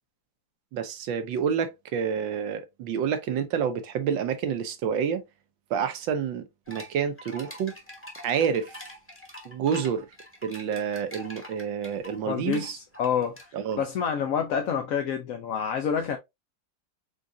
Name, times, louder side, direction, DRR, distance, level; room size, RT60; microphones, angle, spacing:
voice 1, 0.7-5.2 5.7-7.7 8.2-8.7 9.4-10.1 10.4-12.8 13.5-13.8, right 7 dB, 85° right, 1.6 m, -28 dB
sound 1, 6.7-13.8, equal, 10° left, 1.1 m, -44 dB
voice 2, 12.3-16.2, left 7 dB, 60° left, 0.9 m, -28 dB
5.1 x 3.7 x 2.6 m
omnidirectional pair, 2.0 m